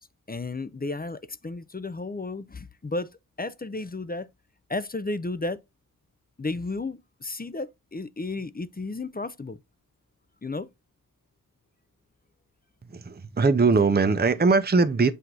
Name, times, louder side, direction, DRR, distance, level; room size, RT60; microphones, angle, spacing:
voice 1, 0.3-3.1 3.4-4.3 4.7-5.6 6.4-9.6 10.4-10.7, left 2 dB, 25° left, 0.5 m, -33 dB
voice 2, 12.9-15.1, right 4 dB, 30° right, 0.6 m, -21 dB
7.8 x 2.7 x 4.7 m
wide cardioid pair, 65°, 34 cm